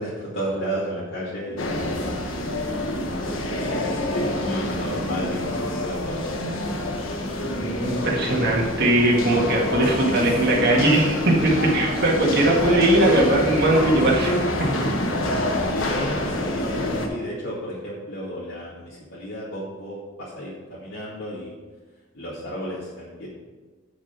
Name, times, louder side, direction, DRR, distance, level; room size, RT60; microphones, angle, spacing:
voice 1, 0.0-1.8 2.2-2.7 3.1-6.3 15.6-21.5 22.1-23.3, equal, 65° left, -8 dB, 2.2 m, -33 dB
sound 1, 1.6-17.1, left 1 dB, 80° left, 1.4 m, -27 dB
voice 2, 7.6-14.9, right 1 dB, 55° right, -3 dB, 1.8 m, -20 dB
8.5 x 6.7 x 5.9 m, 1.3 s
head